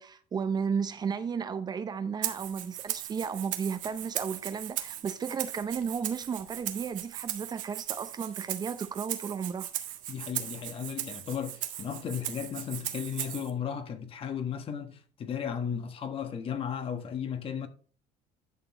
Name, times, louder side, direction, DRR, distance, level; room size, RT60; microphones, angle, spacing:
voice 1, 0.0-9.7, right 6 dB, 30° right, 0.7 m, -34 dB
Rattle (instrument), 2.2-13.5, right 13 dB, 65° right, 1.6 m, -38 dB
voice 2, 10.1-17.7, left 7 dB, 40° left, 1.5 m, -35 dB
11.0 x 6.7 x 3.1 m
cardioid pair, 135°, 14 cm